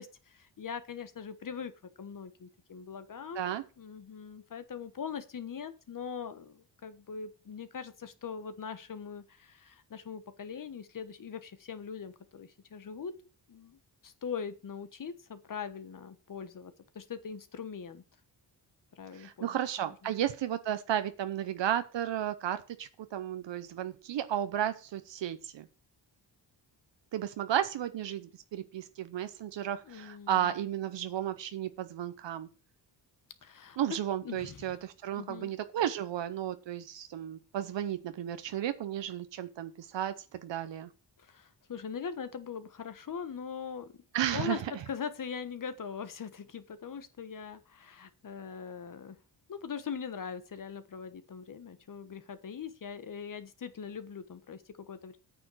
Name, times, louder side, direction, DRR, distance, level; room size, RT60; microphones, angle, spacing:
voice 1, 0.0-1.7 2.0-13.1 13.5-18.0 18.9-19.6 20.0-20.1 29.8-30.5 33.4-33.8 34.2-34.7 35.2-35.5 41.2-44.0 44.3-49.2 49.5-55.2, left 6 dB, 45° left, 12 dB, 1.3 m, -41 dB
voice 2, 19.1-25.7 27.1-32.5 33.8-40.9 44.1-44.7, right 11 dB, 80° right, 10 dB, 0.9 m, -33 dB
9.0 x 6.8 x 6.2 m, 0.34 s
wide cardioid pair, 125°, 43 cm